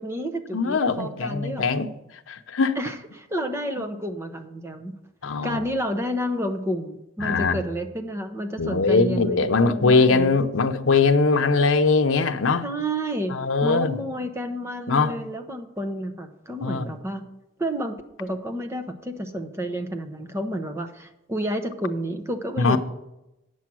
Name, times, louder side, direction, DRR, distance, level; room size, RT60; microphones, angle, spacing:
voice 1, 0.0-1.6 2.8-4.9 5.4-10.3 12.6-17.2 17.6-22.8, equal, 15° right, 0.7 m, -30 dB
voice 2, 0.5-1.9 2.3-2.8 5.2-5.6 7.2-7.6 8.6-12.6 13.3-13.9 14.9-15.1 16.6-16.9 22.6-22.8, left 4 dB, 85° left, 0.8 m, -21 dB
9.1 x 7.2 x 6.2 m
head